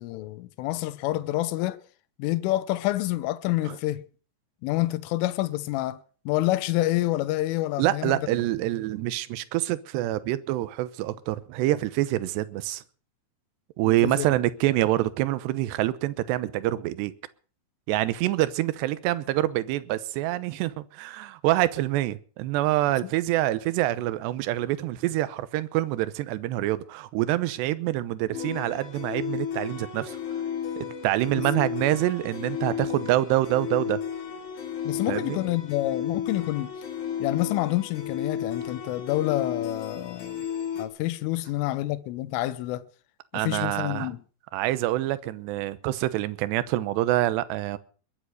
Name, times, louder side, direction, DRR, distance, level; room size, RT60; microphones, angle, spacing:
voice 1, 0.0-1.8 2.2-4.0 4.6-6.0 6.3-8.2 14.0-14.3 34.9-36.7 37.2-40.5 40.8-42.9 43.3-44.2, left 16 dB, 85° left, 3.5 m, -28 dB
voice 2, 7.8-12.8 13.8-17.1 17.9-30.2 30.8-34.0 35.1-35.4 43.3-44.1 44.5-47.8, right 15 dB, 75° right, 2.8 m, -26 dB
sound 1, 28.3-40.9, left 8 dB, 55° left, 4.2 m, -33 dB
22.0 x 10.0 x 6.4 m
omnidirectional pair, 5.7 m